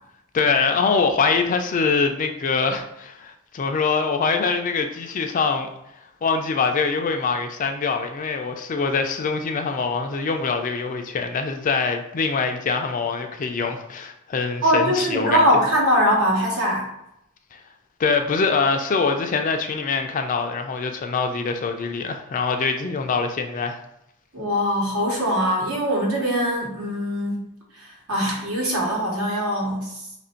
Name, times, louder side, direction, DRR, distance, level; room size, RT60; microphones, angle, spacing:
voice 1, 0.3-5.7 6.2-15.4 17.5-17.6 18.0-23.8, left 4 dB, 40° left, 5 dB, 0.4 m, -24 dB
voice 2, 14.6-16.9 24.3-27.4 27.8-30.0, equal, 75° right, -2 dB, 1.1 m, -22 dB
3.1 x 2.5 x 4.3 m, 0.81 s
head